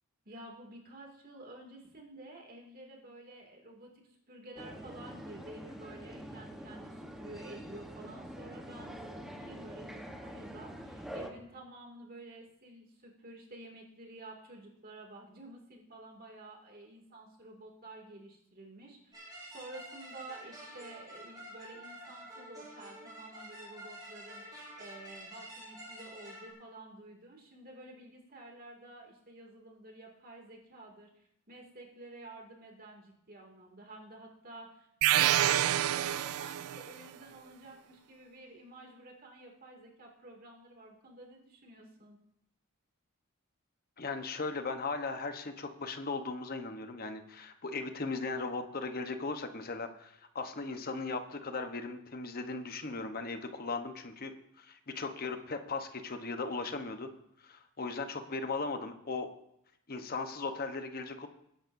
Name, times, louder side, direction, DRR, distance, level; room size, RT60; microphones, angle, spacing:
voice 1, 0.3-19.1 19.5-34.9 35.2-42.2, right 2 dB, 40° right, 1 dB, 2.4 m, -51 dB
sound 1, 4.6-11.3, equal, ahead, 1.1 m, -45 dB
sound 2, 19.1-26.5, right 1 dB, 20° right, 4.5 m, -49 dB
sound 3, 35.0-36.9, right 12 dB, 70° right, 0.3 m, -27 dB
voice 2, 44.0-54.3 54.6-57.1 57.4-59.3 59.9-61.3, left 3 dB, 40° left, 7 dB, 1.0 m, -37 dB
20.5 x 10.5 x 2.7 m, 0.78 s
head